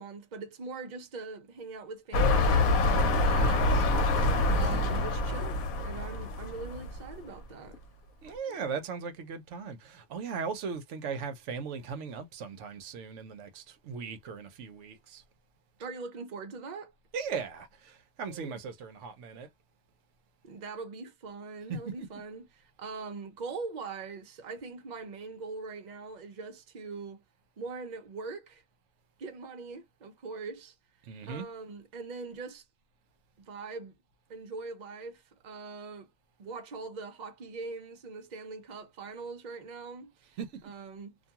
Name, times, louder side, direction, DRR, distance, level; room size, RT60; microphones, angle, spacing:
voice 1, 0.0-3.9 4.5-7.8 8.5-8.8 15.8-16.9 18.3-18.6 20.4-27.2 27.6-28.6 29.2-30.8 31.3-32.7 33.4-33.9 34.3-36.1 36.4-40.4 40.6-41.2, right 4 dB, 50° right, 0.5 m, -42 dB
sound 1, 2.1-7.1 7.7-7.8, left 2 dB, 80° left, 1.1 m, -26 dB
voice 2, 8.2-15.2 17.1-19.5 21.7-22.1 31.0-31.5 40.4-40.6, right 5 dB, 65° right, 0.9 m, -38 dB
2.5 x 2.2 x 2.7 m
omnidirectional pair, 1.4 m